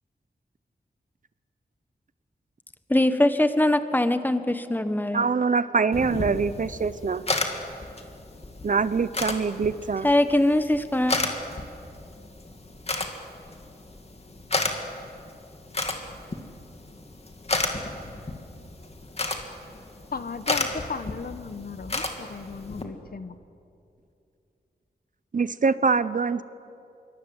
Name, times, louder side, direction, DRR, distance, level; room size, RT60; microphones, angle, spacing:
voice 1, 2.9-5.3 10.0-11.1, left 1 dB, 10° left, 10 dB, 1.4 m, -22 dB
voice 2, 5.1-7.2 8.6-10.1 25.3-26.4, right 5 dB, 50° right, 15 dB, 0.8 m, -24 dB
sound 1, 5.9-22.8, left 2 dB, 40° left, 2.5 m, -33 dB
voice 3, 20.1-23.4, left 5 dB, 65° left, 11 dB, 1.2 m, -35 dB
26.0 x 24.0 x 8.0 m, 2.6 s
wide cardioid pair, 100°, 17 cm